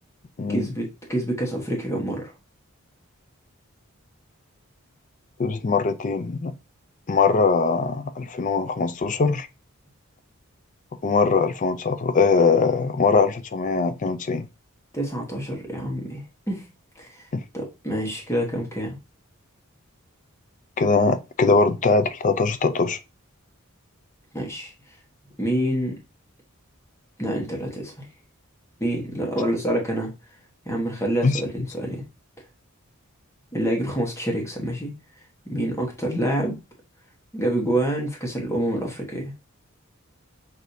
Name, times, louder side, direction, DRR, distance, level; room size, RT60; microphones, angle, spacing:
voice 1, 0.5-2.3 14.9-16.7 16.9-17.3 17.5-19.0 24.3-24.7 25.4-26.0 27.2-28.1 28.8-30.1 30.6-32.0 33.5-34.9 35.4-36.6 37.3-39.3, right 1 dB, 15° left, 1.2 m, -27 dB
voice 2, 5.4-6.5 7.1-9.5 11.0-14.5 17.3-17.4 20.8-23.0 31.2-31.4, left 4 dB, 35° left, 0.4 m, -21 dB
6.2 x 2.7 x 2.7 m
head